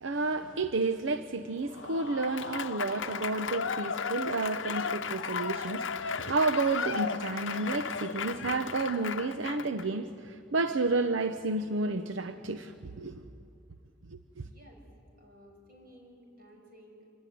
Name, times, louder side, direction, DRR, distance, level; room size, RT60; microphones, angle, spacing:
voice 1, 0.0-13.3 14.1-14.2, right 3 dB, 90° right, 0.8 m, -31 dB
Applause / Crowd, 1.7-9.9, left 6 dB, 90° left, 0.8 m, -35 dB
voice 2, 14.4-14.8 15.2-17.1, equal, 50° right, 6.1 m, -55 dB
26.0 x 19.5 x 9.4 m
head